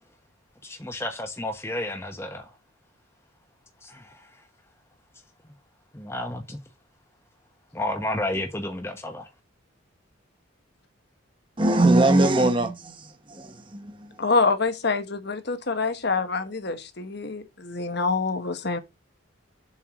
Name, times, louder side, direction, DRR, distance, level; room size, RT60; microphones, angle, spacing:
voice 1, 0.6-2.5 3.8-4.3 5.9-6.6 7.7-9.2, left 1 dB, 10° left, 1.0 m, -31 dB
voice 2, 11.6-14.1, right 2 dB, 25° right, 1.0 m, -21 dB
voice 3, 14.2-18.8, left 4 dB, 55° left, 1.1 m, -26 dB
7.3 x 4.6 x 6.0 m
head